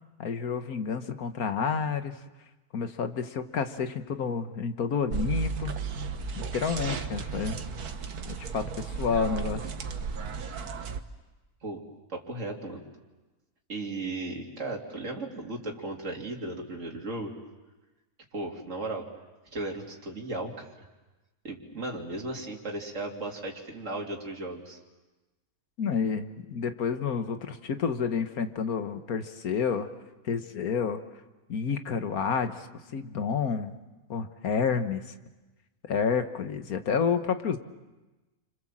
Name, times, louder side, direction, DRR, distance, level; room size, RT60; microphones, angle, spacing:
voice 1, 0.2-2.2 2.7-5.7 6.4-7.6 8.2-9.7 25.8-29.9 30.2-31.0 31.5-33.7 34.1-35.0 35.8-37.6, left 6 dB, 70° left, 8 dB, 1.8 m, -29 dB
sound 1, 5.1-11.0, right 5 dB, 80° right, 1.7 m, -34 dB
voice 2, 12.1-12.8 13.7-17.3 18.3-19.1 19.5-20.7 21.4-24.8, right 2 dB, 55° right, 0 dB, 3.3 m, -36 dB
30.0 x 26.0 x 7.5 m, 1.1 s
omnidirectional pair, 1.6 m